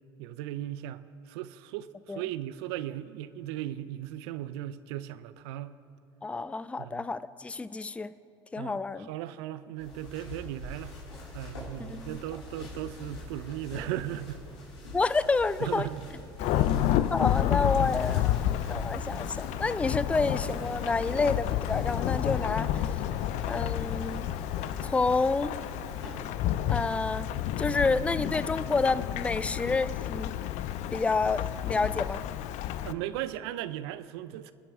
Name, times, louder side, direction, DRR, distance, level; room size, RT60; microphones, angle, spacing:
voice 1, 0.2-1.0 1.3-5.8 6.8-7.1 8.6-11.0 11.3-14.4 15.6-16.1 16.4-16.7 32.8-34.5, right 13 dB, 70° right, 15 dB, 0.6 m, -37 dB
voice 2, 6.2-8.1 8.5-9.1 11.9-12.2 14.9-15.9 17.1-18.4 18.7-22.8 23.5-24.3 24.8-25.6 26.7-27.3 27.6-30.3 30.9-32.2, left 3 dB, 10° left, 15 dB, 0.4 m, -29 dB
sound 1, 9.8-26.3, left 1 dB, 90° left, 3.2 m, -43 dB
Thunderstorm / Rain, 16.4-32.9, left 12 dB, 55° left, 0.6 m, -30 dB
27.0 x 10.0 x 3.6 m, 2.6 s
hypercardioid pair, 75°, 14 cm